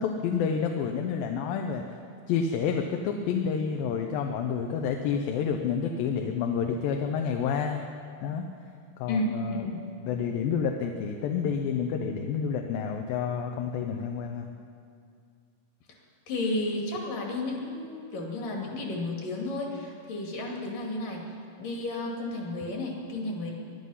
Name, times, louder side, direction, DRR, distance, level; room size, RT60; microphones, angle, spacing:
voice 1, 0.0-1.8 2.3-7.8 8.2-8.5 9.0-9.7 10.0-14.5, left 6 dB, 75° left, 3 dB, 2.5 m, -29 dB
voice 2, 9.1-9.8 16.3-21.2 21.6-23.5, left 2 dB, 60° left, 0 dB, 3.8 m, -32 dB
22.5 x 11.0 x 5.6 m, 2.3 s
omnidirectional pair, 4.3 m